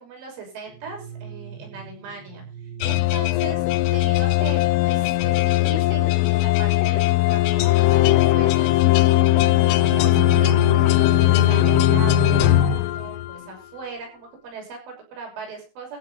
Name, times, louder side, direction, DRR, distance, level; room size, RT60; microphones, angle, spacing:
voice 1, 0.0-2.4 2.8-3.6 3.9-4.6 4.9-9.0 9.6-16.0, right 4 dB, 75° right, 2 dB, 8.6 m, -39 dB
sound 1, 0.8-3.1 9.2-12.7, right 2 dB, 35° right, 2.3 m, -30 dB
sound 2, 2.8-13.5, left 17 dB, 85° left, 3.5 m, -19 dB
15.0 x 7.7 x 5.5 m, 0.33 s
omnidirectional pair, 5.6 m